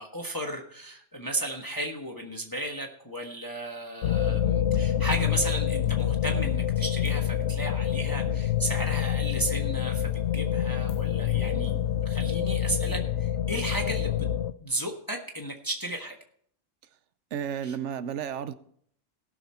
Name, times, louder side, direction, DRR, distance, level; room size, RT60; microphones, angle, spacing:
voice 1, 0.0-11.7 12.0-14.3 14.6-16.2 17.6-17.8, right 1 dB, 20° left, 1.2 m, -34 dB
sound 1, 4.0-14.5, left 10 dB, 75° left, 0.9 m, -27 dB
voice 2, 17.3-18.5, right 8 dB, 90° right, 1.0 m, -32 dB
18.5 x 6.2 x 4.3 m
omnidirectional pair, 1.2 m